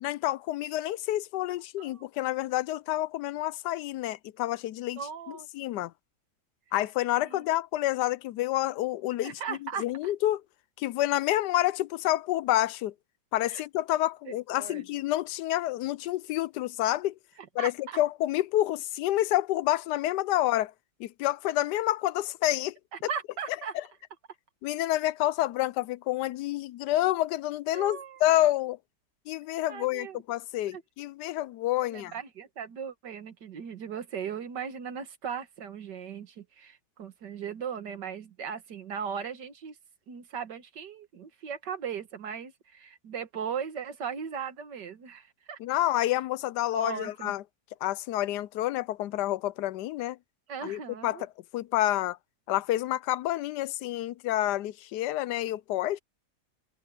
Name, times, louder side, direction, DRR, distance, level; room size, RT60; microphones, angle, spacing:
voice 1, 0.0-5.0 5.3-5.9 6.7-10.4 10.8-12.9 13.3-17.1 17.6-20.7 21.0-22.8 23.7-23.8 24.6-28.8 29.3-32.1 45.6-47.4 47.8-50.2 50.6-51.3 51.5-52.2 52.5-56.0, left 14 dB, 80° left, 1.1 m, -28 dB
voice 2, 5.0-5.8 7.2-7.4 9.2-10.1 13.5-13.6 14.3-14.8 17.4-18.0 22.9-23.8 27.7-28.2 29.7-30.2 30.7-30.8 31.8-39.8 40.1-45.6 46.7-47.3 50.5-51.3, right 7 dB, 85° right, 2.1 m, -38 dB
omnidirectional pair, 1.8 m